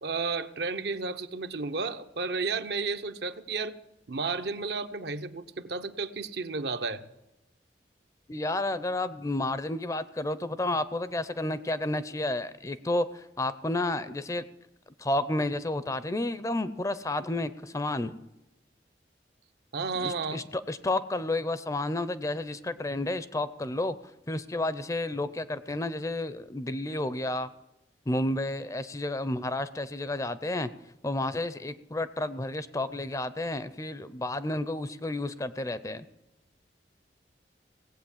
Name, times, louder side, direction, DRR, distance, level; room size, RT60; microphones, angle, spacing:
voice 1, 0.0-3.8 4.1-7.0 19.7-20.4, right 4 dB, 65° right, 9 dB, 0.8 m, -32 dB
voice 2, 8.3-14.4 15.0-18.1 20.0-23.9 24.3-27.5 28.1-30.7 31.0-36.0, left 2 dB, 20° left, 14 dB, 0.5 m, -31 dB
18.0 x 8.2 x 7.2 m, 0.95 s
head